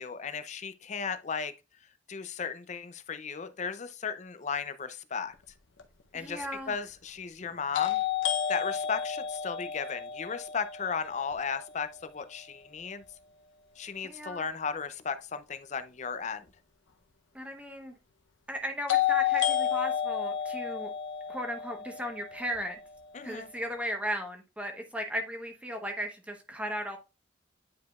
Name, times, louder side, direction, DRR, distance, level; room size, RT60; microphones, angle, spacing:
voice 1, 0.0-1.5 2.1-5.3 6.1-8.0 8.5-13.0 13.8-16.5 23.1-23.5, left 6 dB, 40° left, 0.5 m, -35 dB
sound 1, 5.8-5.9 7.7-11.7 18.9-22.9, left 10 dB, 85° left, 0.7 m, -31 dB
voice 2, 6.1-6.8 14.0-14.5 17.3-17.9 18.5-20.9 21.3-22.8 23.2-27.0, equal, 5° right, 1.0 m, -36 dB
9.3 x 4.8 x 2.4 m
head